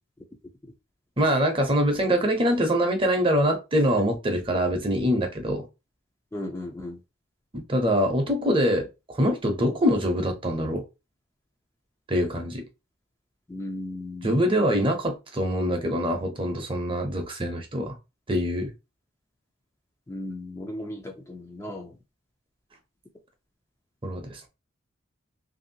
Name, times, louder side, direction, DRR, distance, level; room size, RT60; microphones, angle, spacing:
voice 1, 1.2-5.6 7.5-10.8 12.1-12.6 14.2-17.9 18.3-18.7 24.0-24.5, equal, 25° right, 0.7 m, -24 dB
voice 2, 6.3-7.0 13.5-14.5 20.1-21.9, left 1 dB, 15° left, 0.4 m, -36 dB
2.9 x 2.7 x 2.7 m
head